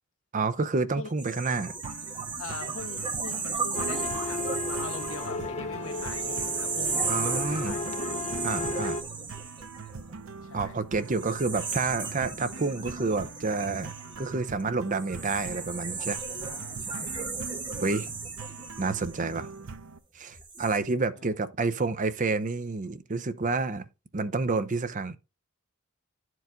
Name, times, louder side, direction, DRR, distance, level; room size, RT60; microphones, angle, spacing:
voice 1, 0.3-1.7 7.1-7.8 8.4-9.0 10.5-16.2 17.8-18.2 18.8-19.5 20.2-23.8 24.1-25.2, right 3 dB, 40° right, 0.7 m, -29 dB
sound 1, 1.2-10.4 11.0-19.8 20.3-20.8, right 4 dB, 25° right, 1.4 m, -35 dB
sound 2, 1.8-20.0, right 4 dB, 80° right, 0.7 m, -43 dB
voice 2, 2.4-7.9 8.4-8.9 10.4-10.8 16.4-17.3 21.2-21.4, left 4 dB, 75° left, 0.8 m, -42 dB
sound 3, 3.7-9.0, left 3 dB, 35° left, 0.7 m, -34 dB
10.5 x 4.7 x 3.8 m
head